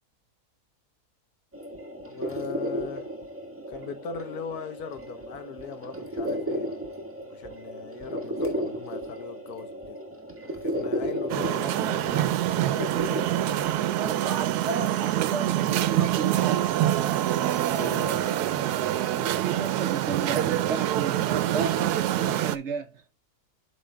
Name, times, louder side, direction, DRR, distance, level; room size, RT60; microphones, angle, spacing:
sound 1, 1.5-13.7, equal, 10° right, 1.4 m, -34 dB
voice 1, 2.1-3.1 3.7-6.7 7.3-10.0 10.6-12.8 17.7-18.7, left 6 dB, 80° left, 1.5 m, -39 dB
sound 2, 11.3-22.6, right 12 dB, 90° right, 1.1 m, -25 dB
voice 2, 13.9-16.7 19.2-21.2 21.5-23.2, right 5 dB, 60° right, 0.9 m, -33 dB
12.5 x 4.7 x 2.2 m
omnidirectional pair, 1.6 m